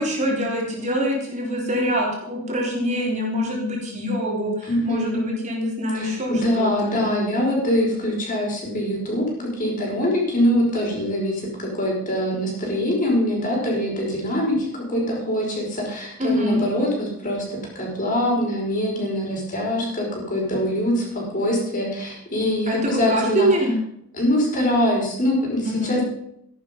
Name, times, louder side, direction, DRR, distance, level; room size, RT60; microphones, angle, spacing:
voice 1, 0.0-6.9 16.2-16.6 22.7-23.7 25.6-26.0, equal, 35° right, -2 dB, 3.8 m, -24 dB
voice 2, 4.7-5.2 5.9-23.5 24.1-26.0, left 1 dB, 40° left, -2 dB, 5.6 m, -23 dB
14.0 x 11.5 x 5.4 m, 0.74 s
head